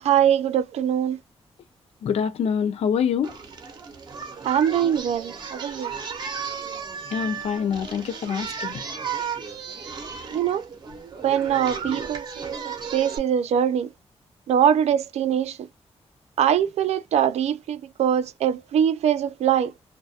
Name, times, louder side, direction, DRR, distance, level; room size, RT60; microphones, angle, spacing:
voice 1, 0.0-1.2 4.5-5.9 10.3-10.6 11.2-12.5 12.9-13.9 14.5-15.6 16.4-19.7, right 9 dB, 80° right, 0.4 m, -22 dB
voice 2, 2.0-3.3 7.1-8.8, left 7 dB, 70° left, 0.4 m, -25 dB
Singing, 3.2-13.2, right 6 dB, 45° right, 0.6 m, -34 dB
2.3 x 2.2 x 2.7 m
wide cardioid pair, 160°, 11 cm